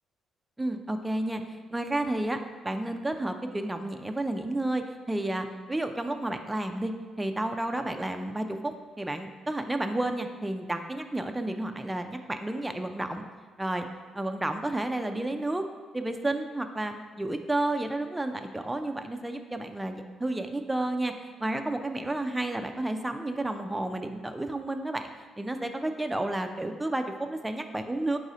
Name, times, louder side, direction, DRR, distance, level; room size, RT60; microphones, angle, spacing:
voice 1, 0.6-2.4 2.6-13.2 13.6-13.9 14.1-15.6 15.9-21.1 21.4-25.1 25.4-28.2, right 1 dB, 10° right, 6 dB, 0.3 m, -31 dB
4.0 x 2.7 x 4.8 m, 1.5 s
cardioid pair, 90°, 0 cm